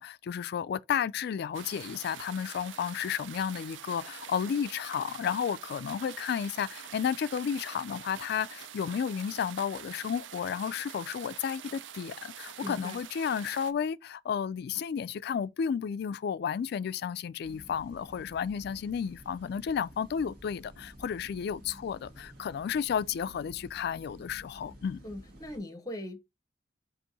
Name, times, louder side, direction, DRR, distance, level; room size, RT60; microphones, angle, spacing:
voice 1, 0.0-25.0, left 7 dB, 60° left, 0.3 m, -32 dB
sound 1, 1.5-13.7, right 10 dB, 80° right, 0.4 m, -46 dB
voice 2, 12.6-13.0 25.0-26.2, left 1 dB, 20° left, 0.8 m, -39 dB
sound 2, 17.4-25.6, equal, 55° right, 1.6 m, -52 dB
4.5 x 2.9 x 4.0 m
head